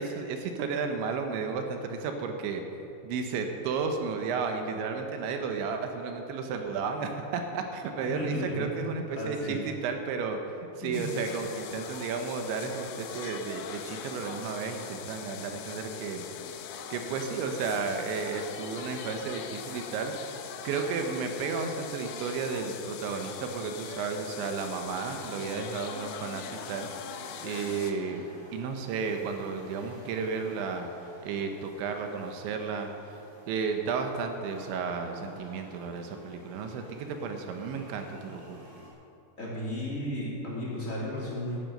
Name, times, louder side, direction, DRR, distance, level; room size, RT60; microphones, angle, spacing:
voice 1, 0.0-2.6 3.0-10.4 10.8-16.2 16.9-20.4 20.6-26.9 27.4-28.3 28.5-30.9 31.2-32.9 33.5-38.6, right 5 dB, 75° right, 5 dB, 3.2 m, -33 dB
voice 2, 8.0-9.6 10.8-11.1 39.4-41.6, left 1 dB, 20° left, -6 dB, 2.5 m, -34 dB
sound 1, 10.9-27.9, left 8 dB, 85° left, 3.4 m, -41 dB
sound 2, 23.8-38.9, right 1 dB, 45° right, 5.0 m, -53 dB
15.0 x 11.0 x 6.5 m, 2.7 s
omnidirectional pair, 5.7 m